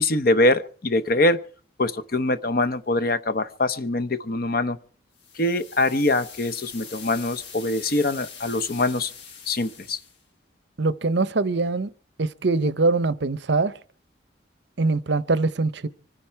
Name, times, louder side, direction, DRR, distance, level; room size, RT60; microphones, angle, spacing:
voice 1, 0.0-1.4 1.8-4.8 5.4-9.1 9.5-10.0, left 2 dB, 50° left, 0.8 m, -23 dB
sound 1, 5.2-10.2, left 6 dB, 65° left, 1.6 m, -43 dB
voice 2, 10.8-11.9 12.2-13.7 14.8-15.9, right 3 dB, 60° right, 0.7 m, -23 dB
24.5 x 10.0 x 4.6 m
head